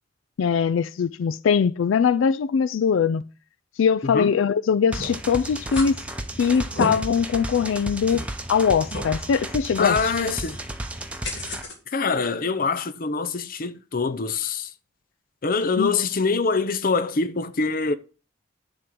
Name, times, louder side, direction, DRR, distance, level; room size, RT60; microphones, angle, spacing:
voice 1, 0.4-3.2 3.8-6.0 6.4-8.2 8.5-10.1 15.8-15.9, left 6 dB, 85° left, 0.4 m, -21 dB
voice 2, 4.0-4.4 9.8-10.6 11.9-14.7 15.4-17.9, left 4 dB, 45° left, 0.6 m, -24 dB
sound 1, 4.9-11.6, right 1 dB, 5° right, 0.8 m, -34 dB
sound 2, 5.0-5.2 5.7-5.9 6.5-6.9 7.5-7.6 8.1-8.2 8.9-9.1 11.2-11.8, left 1 dB, 65° left, 2.3 m, -31 dB
10.5 x 3.7 x 6.1 m
head